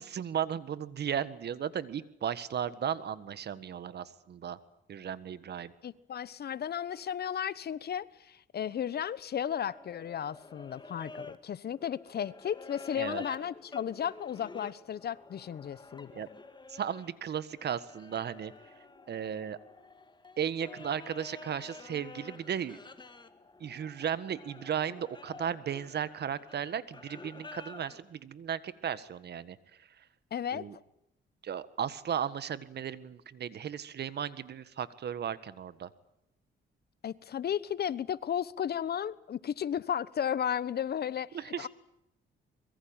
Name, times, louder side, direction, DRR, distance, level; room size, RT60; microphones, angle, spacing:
voice 1, 0.0-4.6 4.9-5.7 13.0-13.2 16.1-16.3 16.7-18.5 19.1-19.6 20.4-22.8 23.6-30.1 30.5-30.8 31.4-35.9 41.3-41.7, right 8 dB, 55° right, 1.6 m, -35 dB
voice 2, 5.8-16.2 30.3-30.6 37.0-41.3 41.6-41.7, left 9 dB, 55° left, 1.0 m, -34 dB
sound 1, 9.5-17.1 17.5-28.0, left 3 dB, 20° left, 2.3 m, -50 dB
25.0 x 22.5 x 9.0 m
cardioid pair, 90°, 20 cm